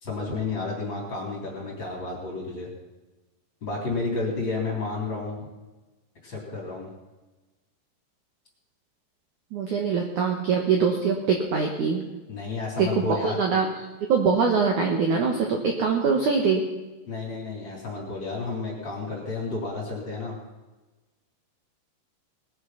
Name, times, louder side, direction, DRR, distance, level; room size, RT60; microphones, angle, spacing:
voice 1, 0.0-2.7 3.6-5.5 6.2-6.9 12.3-13.4 17.1-20.4, left 3 dB, 25° left, -2 dB, 3.4 m, -31 dB
voice 2, 9.5-12.1 12.8-13.7 14.1-16.7, right 5 dB, 70° right, 2 dB, 1.8 m, -23 dB
20.0 x 9.5 x 5.7 m, 1.2 s
omnidirectional pair, 5.7 m